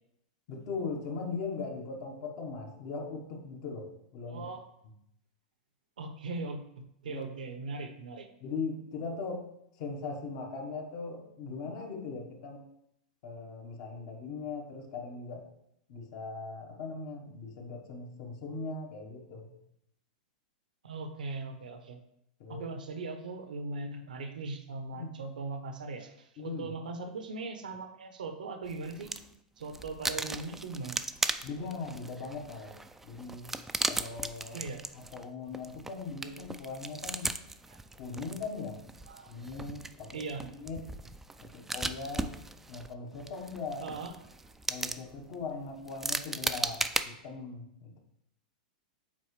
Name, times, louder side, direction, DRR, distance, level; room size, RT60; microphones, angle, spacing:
voice 1, 0.5-4.5 7.1-7.2 8.4-12.7 13.2-15.5 15.9-19.5 22.4-22.7 24.9-25.1 26.4-26.7 31.4-32.7 33.0-33.5 33.9-34.6 34.9-37.3 37.9-38.8 39.3-40.8 41.4-42.3 42.7-43.9 44.7-48.0, left 4 dB, 50° left, 3 dB, 1.2 m, -39 dB
voice 2, 4.3-4.6 6.0-6.6 7.0-8.3 20.8-22.0 22.5-29.1 29.6-31.0 34.5-34.8 37.7-37.8 39.1-39.4 40.1-40.4 43.8-44.1, right 3 dB, 90° right, 7 dB, 0.8 m, -39 dB
sound 1, 28.7-29.3 29.6-47.0, right 2 dB, 5° right, 0.3 m, -37 dB
7.5 x 4.3 x 3.2 m, 0.78 s
hypercardioid pair, 125°, 4 cm